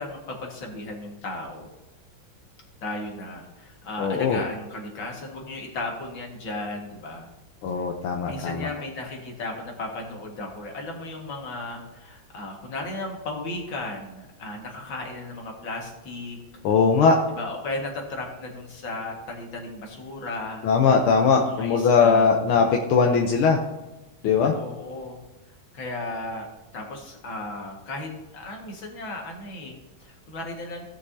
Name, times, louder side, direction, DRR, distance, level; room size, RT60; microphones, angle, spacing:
voice 1, 0.0-1.7 2.8-7.3 7.7-7.9 8.2-16.4 17.3-20.7 21.4-22.3 24.6-25.2 25.7-26.5 26.7-30.8, left 2 dB, 65° left, 1 dB, 2.5 m, -35 dB
voice 2, 4.0-4.4 7.6-8.7 16.6-17.2 20.6-23.6 24.2-24.5, left 5 dB, 85° left, 1 dB, 1.7 m, -20 dB
17.0 x 5.9 x 2.8 m, 1.1 s
omnidirectional pair, 2.3 m